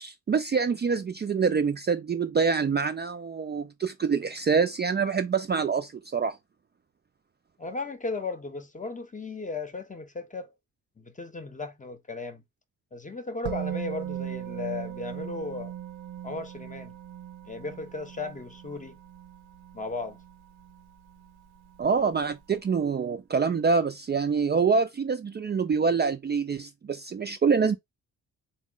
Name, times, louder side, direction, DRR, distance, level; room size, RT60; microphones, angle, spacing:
voice 1, 0.0-6.4 21.8-27.8, right 5 dB, 30° right, 0.4 m, -26 dB
voice 2, 7.6-10.5 11.0-12.4 12.9-15.7 16.2-17.0 17.4-19.0 19.7-20.2, left 3 dB, 20° left, 0.8 m, -36 dB
Musical instrument, 13.4-21.3 21.6-21.8, right 11 dB, 80° right, 0.7 m, -39 dB
3.5 x 2.0 x 3.8 m
supercardioid pair, 60°, 38 cm